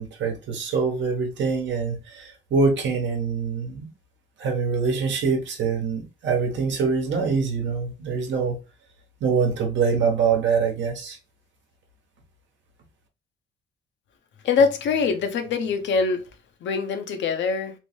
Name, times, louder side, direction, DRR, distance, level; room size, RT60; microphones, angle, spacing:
voice 1, 0.0-3.9 4.4-8.6 9.2-11.2, right 5 dB, 70° right, 1.0 m, -24 dB
voice 2, 14.4-16.2 16.6-17.7, left 5 dB, 65° left, 0.7 m, -23 dB
3.1 x 2.1 x 3.0 m
cardioid pair, 90°, 20 cm